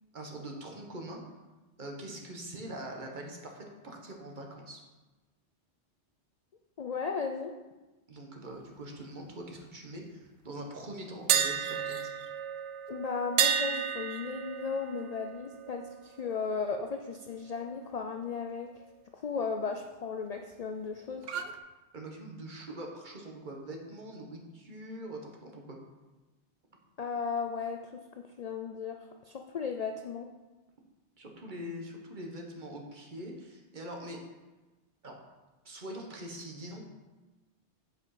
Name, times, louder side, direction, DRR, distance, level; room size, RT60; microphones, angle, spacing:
voice 1, 0.1-1.2 1.8-4.8 8.1-12.1 21.9-25.8 31.2-34.2 35.0-35.2 35.6-36.8, right 1 dB, 45° right, 1 dB, 1.3 m, -43 dB
voice 2, 6.8-7.5 12.9-18.7 19.1-21.3 27.0-29.0 29.2-30.3, left 5 dB, 55° left, 4 dB, 0.4 m, -35 dB
sound 1, 11.3-17.2 17.5-17.7 21.2-21.6, right 8 dB, 65° right, 0.8 m, -33 dB
7.8 x 5.1 x 4.8 m, 1.2 s
omnidirectional pair, 1.2 m